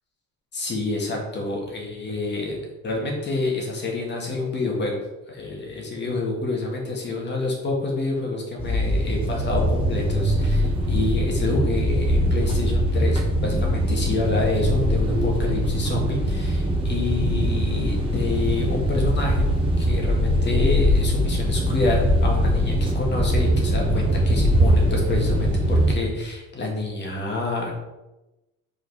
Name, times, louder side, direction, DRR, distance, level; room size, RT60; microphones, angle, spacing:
voice 1, 0.5-5.0 5.3-19.5 19.8-27.7, left 3 dB, 35° left, -1 dB, 2.0 m, -28 dB
sound 1, 8.6-25.9, equal, 15° right, 1.2 m, -22 dB
5.5 x 4.8 x 4.8 m, 1.0 s
cardioid pair, 135°, 33 cm